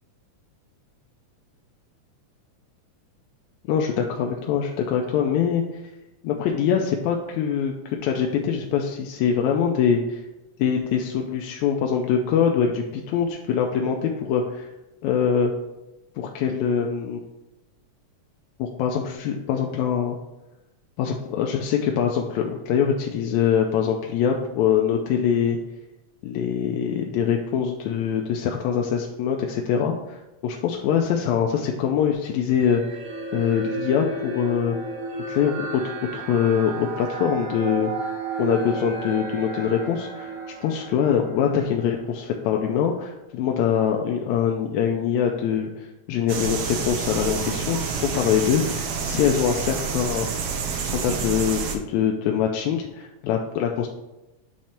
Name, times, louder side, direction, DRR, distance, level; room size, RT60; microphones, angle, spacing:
voice 1, 3.7-5.6 6.2-10.2 10.6-14.7 15.0-15.5 16.2-17.2 18.6-20.2 21.0-25.6 26.2-33.0 33.3-34.8 35.3-35.8 36.1-37.9 38.4-40.3 40.6-50.4 50.9-53.9, left 8 dB, 80° left, 1 dB, 1.9 m, -23 dB
sound 1, 32.6-42.1, right 3 dB, 55° right, 1.9 m, -33 dB
sound 2, 46.3-51.8, right 5 dB, 75° right, 1.5 m, -28 dB
8.7 x 3.2 x 4.3 m, 0.95 s
omnidirectional pair, 3.3 m